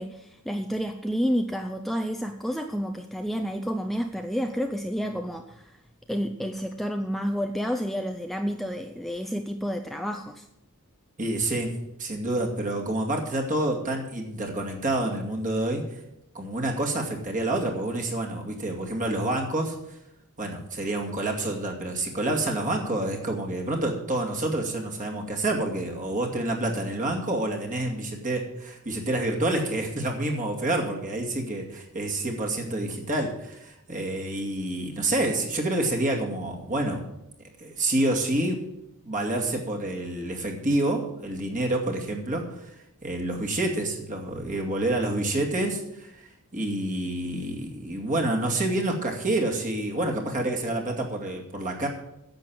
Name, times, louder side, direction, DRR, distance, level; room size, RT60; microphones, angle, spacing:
voice 1, 0.0-5.8 6.1-10.5, equal, ahead, 5 dB, 0.5 m, -30 dB
voice 2, 11.2-15.8 16.3-19.7 20.4-37.0 37.6-38.6 39.0-42.7 43.0-51.9, right 1 dB, 35° right, 1 dB, 2.4 m, -28 dB
10.5 x 7.8 x 8.7 m, 0.85 s
head